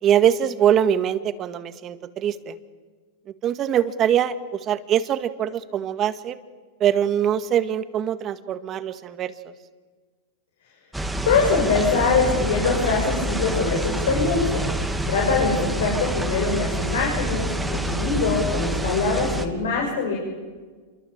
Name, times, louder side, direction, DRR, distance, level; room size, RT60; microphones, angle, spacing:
voice 1, 0.0-2.6 3.4-4.3 4.6-6.4 6.8-9.3, right 10 dB, 30° right, 11 dB, 1.8 m, -22 dB
sound 1, 10.9-19.5, right 1 dB, 5° right, 2.2 m, -27 dB
voice 2, 11.2-14.6 15.1-20.2, left 4 dB, 85° left, -1 dB, 7.8 m, -23 dB
28.0 x 23.5 x 8.9 m, 1.4 s
hypercardioid pair, 130°, 0 cm